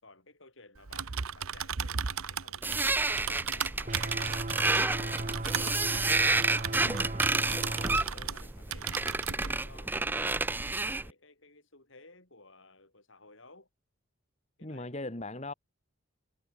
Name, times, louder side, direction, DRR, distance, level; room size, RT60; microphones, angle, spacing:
voice 1, 0.0-3.1 3.4-6.1 6.7-10.4 10.8-13.7 14.6-15.2, left 2 dB, 60° left, 6.8 m, -57 dB
Typing, 0.8-8.4 8.7-9.5, right 7 dB, 85° right, 1.0 m, -36 dB
sound 1, 2.6-11.1, right 3 dB, 10° right, 0.5 m, -30 dB
sound 2, 3.9-8.0, right 2 dB, 35° right, 1.6 m, -37 dB
voice 2, 6.8-7.1 14.6-15.5, left 2 dB, 30° left, 2.2 m, -38 dB
head